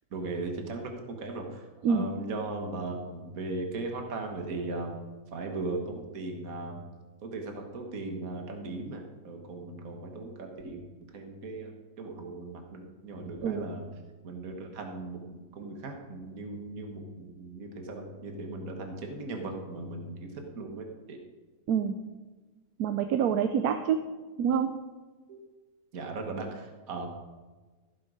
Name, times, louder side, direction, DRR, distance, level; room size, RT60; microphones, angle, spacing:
voice 1, 0.1-5.0 5.3-6.8 7.2-10.8 11.1-13.9 14.2-15.2 15.5-21.2 25.3-25.4 25.9-27.1, right 3 dB, 70° right, 3 dB, 1.8 m, -38 dB
voice 2, 22.8-24.1 24.4-24.7, right 7 dB, 90° right, 8 dB, 1.2 m, -26 dB
15.5 x 7.4 x 5.0 m, 1.3 s
omnidirectional pair, 1.6 m